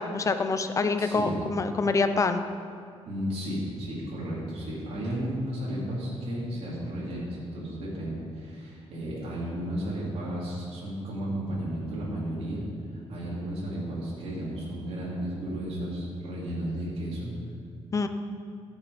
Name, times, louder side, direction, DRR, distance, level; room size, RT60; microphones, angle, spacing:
voice 1, 0.0-2.4 17.9-18.1, left 4 dB, 30° left, 8 dB, 0.7 m, -26 dB
voice 2, 1.0-1.4 3.1-12.6 12.9-17.3, right 1 dB, 70° right, -6 dB, 3.3 m, -33 dB
14.5 x 7.2 x 5.1 m, 2.2 s
cardioid pair, 120°, 11 cm